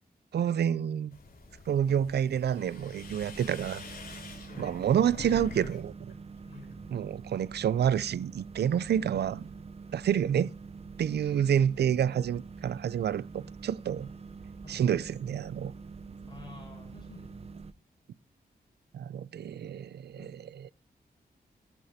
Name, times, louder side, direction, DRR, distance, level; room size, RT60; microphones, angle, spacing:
voice 1, 0.3-1.2 1.7-3.8 4.6-5.9 6.9-9.5 9.9-10.5 11.0-14.1 14.7-15.7 18.9-20.7, right 9 dB, 85° right, 0.4 m, -28 dB
sound 1, 1.1-5.8 6.1-6.7, left 3 dB, 60° left, 4.2 m, -45 dB
sound 2, 3.0-17.7, right 4 dB, 40° right, 0.6 m, -46 dB
voice 2, 6.4-7.0 10.3-10.4 14.6-14.9 16.3-17.5 20.2-20.4, left 2 dB, 25° left, 6.5 m, -50 dB
16.0 x 11.0 x 2.8 m
wide cardioid pair, 150°, 17 cm